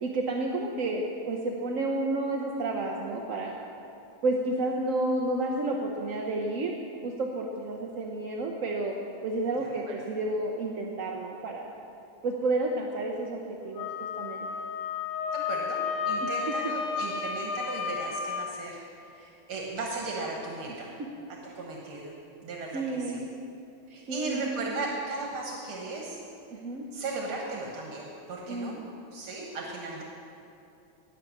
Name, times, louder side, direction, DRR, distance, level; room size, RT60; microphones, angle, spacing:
voice 1, 0.0-3.6 4.2-6.7 7.0-8.9 9.2-11.7 12.2-14.5 16.2-16.3 22.7-23.2 24.1-24.4 26.5-26.9 28.5-28.9, right 2 dB, 55° right, 0 dB, 0.9 m, -31 dB
voice 2, 9.6-10.0 15.3-20.9 21.3-22.1 22.4-23.2 23.9-26.2 26.9-28.8 29.1-30.0, right 3 dB, 80° right, -1 dB, 2.2 m, -36 dB
Wind instrument woodwind instrument, 13.7-18.5, left 5 dB, 75° left, 1.7 m, -32 dB
18.5 x 6.6 x 7.2 m, 2.7 s
omnidirectional pair, 2.3 m